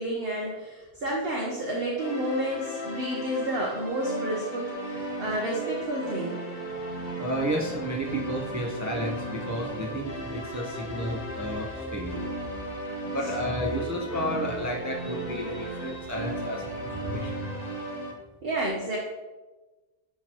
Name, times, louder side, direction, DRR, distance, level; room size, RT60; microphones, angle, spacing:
voice 1, 0.0-6.4 18.4-19.0, right 1 dB, 45° right, -2 dB, 1.0 m, -30 dB
sound 1, 2.0-18.1, right 1 dB, 30° left, 0.9 m, -36 dB
voice 2, 7.2-12.3 13.1-17.5, equal, 30° right, -2 dB, 0.3 m, -32 dB
10.5 x 3.7 x 2.9 m, 1.2 s
omnidirectional pair, 1.6 m